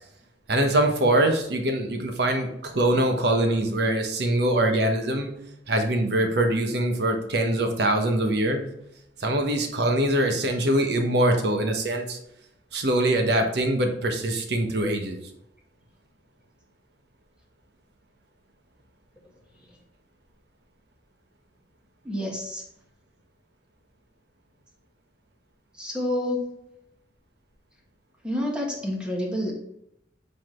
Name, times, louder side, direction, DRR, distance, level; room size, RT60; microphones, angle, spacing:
voice 1, 0.5-5.3 5.7-8.7 9.2-12.2 12.7-15.2, right 1 dB, 65° right, 4 dB, 1.1 m, -23 dB
voice 2, 22.0-22.6 25.7-26.5 28.2-29.5, left 1 dB, 5° right, -2 dB, 1.4 m, -28 dB
7.4 x 4.1 x 3.1 m, 0.80 s
head